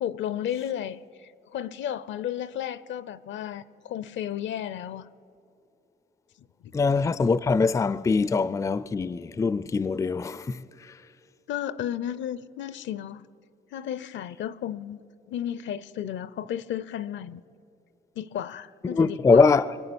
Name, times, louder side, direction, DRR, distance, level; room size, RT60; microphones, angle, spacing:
voice 1, 0.0-1.0 1.5-5.0 11.5-13.2 13.7-15.0 15.3-17.4 18.2-19.5, left 10 dB, 70° left, 0.6 m, -33 dB
voice 2, 6.7-10.6 18.8-19.7, left 4 dB, 15° left, 0.3 m, -22 dB
23.0 x 8.6 x 6.9 m
cardioid pair, 90°, 20 cm